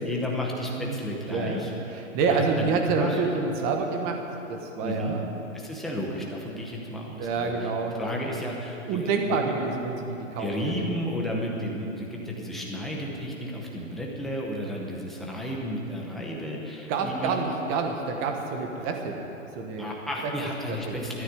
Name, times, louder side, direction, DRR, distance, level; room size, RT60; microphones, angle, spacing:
voice 1, 0.0-1.7 2.3-3.2 4.8-5.2 5.5-7.7 8.0-9.5 10.4-17.5 19.8-21.2, equal, ahead, -3 dB, 0.7 m, -33 dB
voice 2, 1.3-4.2 4.5-5.3 7.2-8.0 8.9-10.5 10.7-10.9 13.7-13.8 16.9-19.2 19.5-19.9 20.7-21.0, right 4 dB, 20° right, 3 dB, 1.2 m, -28 dB
13.5 x 9.7 x 9.5 m, 3.0 s
hypercardioid pair, 160°, 40 cm